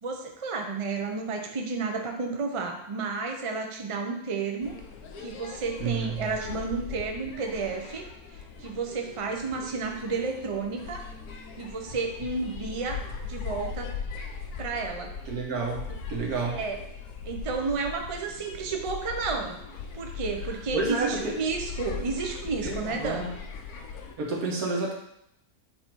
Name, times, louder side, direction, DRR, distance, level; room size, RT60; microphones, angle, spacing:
voice 1, 0.0-4.7 5.2-8.0 8.3-11.0 11.6-13.9 14.6-15.1 15.9-16.0 16.5-16.8 17.2-19.6 19.9-23.3, right 4 dB, 40° right, 3 dB, 0.4 m, -32 dB
sound 1, 4.6-24.2, left 5 dB, 80° left, 1.2 m, -40 dB
voice 2, 5.8-6.3 15.3-16.6 20.7-21.4 22.6-23.3 24.2-24.9, right 3 dB, 75° right, -2 dB, 1.7 m, -30 dB
7.5 x 2.8 x 4.5 m, 0.76 s
omnidirectional pair, 1.6 m